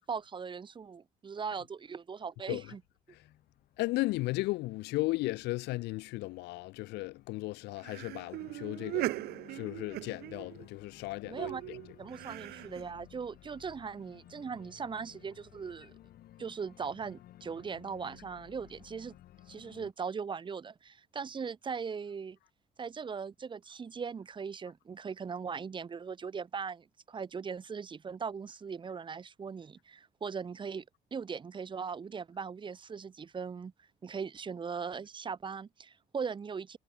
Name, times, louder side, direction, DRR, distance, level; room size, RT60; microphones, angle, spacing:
voice 1, 0.0-2.8 11.2-11.6 12.0-15.9 16.4-19.1 19.5-22.4 22.8-30.8 31.1-33.7 34.0-36.8, right 6 dB, 30° right, 0.9 m, -39 dB
Organ, 3.1-19.9, left 13 dB, 65° left, 1.7 m, -57 dB
voice 2, 3.8-9.1 9.5-12.0, left 20 dB, 85° left, 0.6 m, -35 dB
sound 1, 7.8-10.8 11.4-12.9, right 18 dB, 70° right, 0.4 m, -39 dB
cardioid pair, 110°, 17 cm